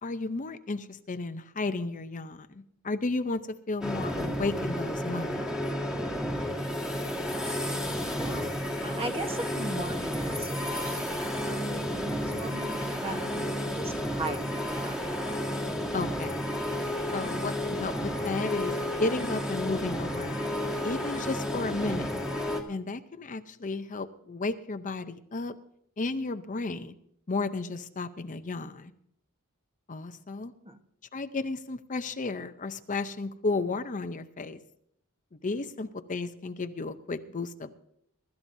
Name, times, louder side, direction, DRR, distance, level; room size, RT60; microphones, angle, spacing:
voice 1, 0.0-3.4 3.7-5.5 15.9-16.4 17.1-18.7 19.0-20.5 20.8-22.1 22.7-25.6 26.0-26.9 27.3-28.9 29.9-30.5 31.1-34.6 35.3-37.7, left 3 dB, 35° left, 9 dB, 0.6 m, -33 dB
sound 1, 3.8-22.6, equal, 5° right, 1.6 m, -32 dB
voice 2, 8.2-8.5 8.8-15.1 30.6-30.8, right 2 dB, 25° right, 6 dB, 1.2 m, -39 dB
23.5 x 12.5 x 2.7 m, 0.71 s
head